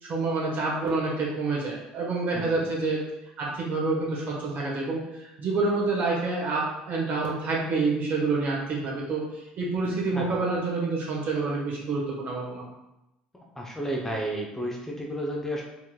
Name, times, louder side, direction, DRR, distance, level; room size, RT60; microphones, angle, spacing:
voice 1, 0.0-3.0 3.4-9.2 9.6-12.7, right 3 dB, 50° right, -3 dB, 1.4 m, -28 dB
voice 2, 2.3-2.7 10.1-10.4 13.6-15.6, right 1 dB, 10° left, -2 dB, 0.7 m, -32 dB
4.5 x 3.0 x 2.3 m, 0.92 s
hypercardioid pair, 65°, 4 cm